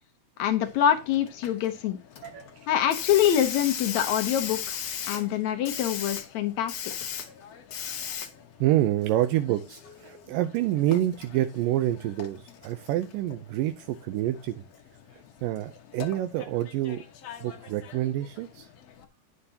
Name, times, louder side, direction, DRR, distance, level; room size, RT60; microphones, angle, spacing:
voice 1, 0.4-2.0 2.7-4.8 5.1-6.7, left 10 dB, 90° left, 7 dB, 1.6 m, -25 dB
Hiss, 0.6-19.0, left 8 dB, 70° left, 1.5 m, -40 dB
voice 2, 2.2-2.6 8.6-14.6 15.1-17.0 17.4-18.7, right 13 dB, 85° right, 9 dB, 2.0 m, -27 dB
11.0 x 9.9 x 2.8 m, 0.26 s
omnidirectional pair, 4.6 m